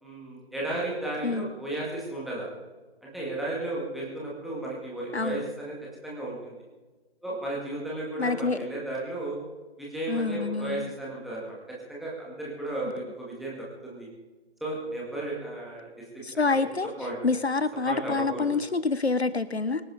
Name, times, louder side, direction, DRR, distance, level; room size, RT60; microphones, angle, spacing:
voice 1, 0.0-2.5 3.0-5.8 6.0-6.6 7.2-9.4 9.8-11.5 11.9-14.1 14.6-15.9 16.1-16.7 17.0-17.2 17.9-18.5, right 2 dB, ahead, -6 dB, 2.0 m, -34 dB
voice 2, 8.2-8.7 10.1-10.9 16.2-16.9 17.2-19.8, left 4 dB, 75° left, 14 dB, 1.1 m, -27 dB
24.5 x 10.0 x 4.0 m, 1.3 s
figure-of-eight pair, 150°, 33 cm